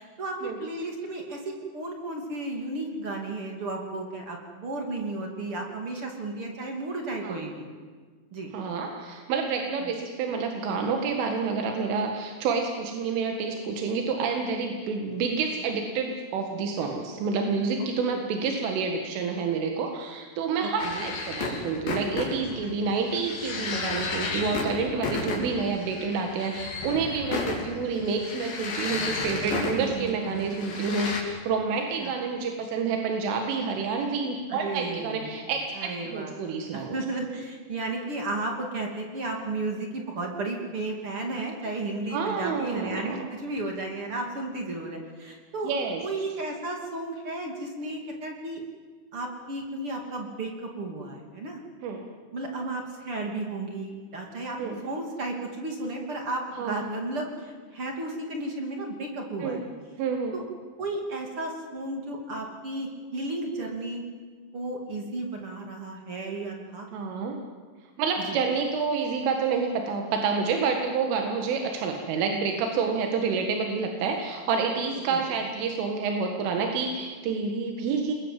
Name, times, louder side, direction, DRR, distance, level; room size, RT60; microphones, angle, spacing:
voice 1, 0.0-7.7 8.3-8.5 9.8-9.9 18.0-18.2 20.6-21.1 22.6-22.7 29.5-30.5 32.0-32.1 34.5-35.3 35.8-45.7 46.0-48.6 49.1-51.6 52.3-59.6 60.3-60.4 60.8-64.0 64.5-66.9 68.3-68.4 75.1-75.2, right 2 dB, 35° right, 2 dB, 2.8 m, -34 dB
voice 2, 8.5-36.9 42.1-43.2 45.6-46.0 51.8-52.0 54.6-54.8 56.6-57.0 59.4-59.6 60.0-60.3 66.9-67.4 68.0-78.1, right 5 dB, 90° right, 3 dB, 4.4 m, -28 dB
sound 1, 20.8-31.2, left 3 dB, 50° left, 4.9 m, -33 dB
28.5 x 21.5 x 7.7 m, 1.5 s
omnidirectional pair, 5.5 m